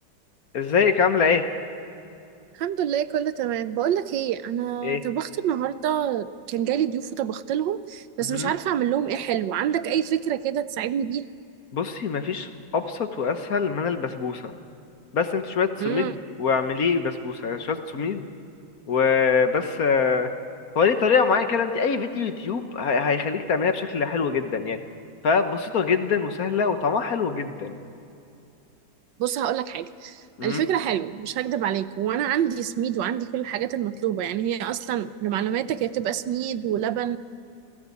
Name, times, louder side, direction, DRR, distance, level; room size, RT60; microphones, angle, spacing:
voice 1, 0.5-1.4 4.8-5.0 8.3-8.5 11.7-14.5 15.1-16.1 16.4-18.3 18.9-20.3 20.7-24.8 25.2-27.7 30.4-30.6, left 5 dB, 55° left, 8 dB, 1.5 m, -24 dB
voice 2, 2.6-11.3 15.8-16.2 29.2-37.2, right 10 dB, 75° right, 14 dB, 1.4 m, -26 dB
27.0 x 17.5 x 8.4 m, 2.6 s
omnidirectional pair, 2.0 m